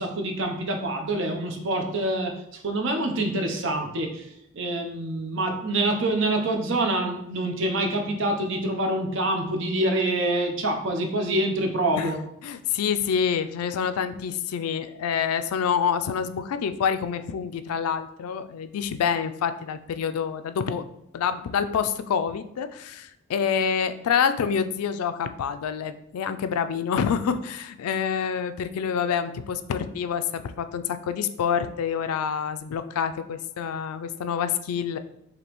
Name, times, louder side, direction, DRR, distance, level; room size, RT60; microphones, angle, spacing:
voice 1, 0.0-4.3 4.5-12.2, right 1 dB, 60° right, 3 dB, 0.7 m, -26 dB
voice 2, 12.4-20.9 21.1-35.0, left 7 dB, 90° left, 11 dB, 0.3 m, -27 dB
5.0 x 3.0 x 3.0 m, 0.78 s
head